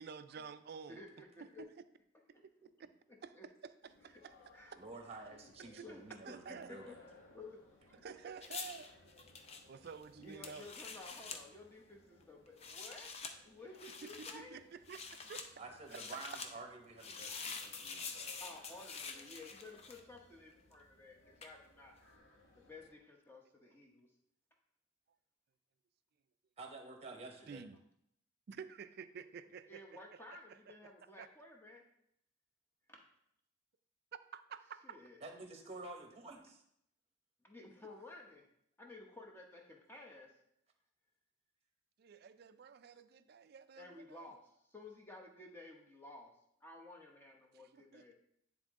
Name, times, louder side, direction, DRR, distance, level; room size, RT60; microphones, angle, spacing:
voice 1, 0.0-1.0 1.6-1.7 2.6-2.7 3.2-4.3 4.7-4.8 5.7-5.9 6.2-6.7 8.0-8.9 9.2-9.3 9.6-10.7 14.0-15.0 15.3-15.4 15.9-16.0 27.5-27.8 28.5-31.3 34.3-35.0 42.0-44.3 47.5-48.1, right 6 dB, 50° right, 11 dB, 0.3 m, -51 dB
voice 2, 0.9-1.7 2.3-2.4 3.1-3.5 4.5-4.7 5.8-6.9 7.3-8.0 10.2-13.1 13.4-14.6 18.4-22.0 22.5-24.1 29.7-31.8 32.9-33.0 34.8-35.2 37.4-38.5 38.8-40.3 43.8-46.3 46.6-48.1, left 2 dB, 10° left, 0 dB, 0.9 m, -54 dB
sound 1, 3.8-23.0, left 2 dB, 85° left, 1.5 m, -65 dB
voice 3, 4.8-7.0 15.6-18.3 26.6-27.6 35.2-36.6, right 3 dB, 30° right, 3 dB, 0.9 m, -50 dB
sound 2, 8.4-11.4 12.5-13.3 13.7-14.4 14.9-15.5 15.9-16.5 17.0-20.2 21.4-21.6, left 5 dB, 30° left, 0.5 m, -46 dB
9.8 x 3.7 x 3.6 m, 0.74 s
head